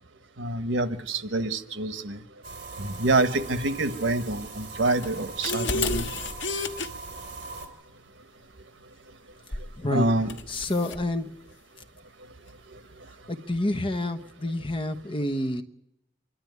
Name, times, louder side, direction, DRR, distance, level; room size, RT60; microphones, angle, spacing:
voice 1, 0.4-2.2 2.8-6.1 9.9-10.3 12.7-12.8, right 2 dB, 90° right, 11 dB, 1.3 m, -26 dB
sound 1, 2.4-7.7, right 3 dB, 65° right, 3.4 m, -40 dB
sound 2, 5.0-6.9 9.5-9.8 10.3-11.0, left 3 dB, 90° left, 1.4 m, -30 dB
voice 2, 10.5-11.3 13.3-15.6, left 1 dB, 30° left, 8 dB, 1.1 m, -28 dB
25.5 x 12.0 x 9.6 m, 0.86 s
head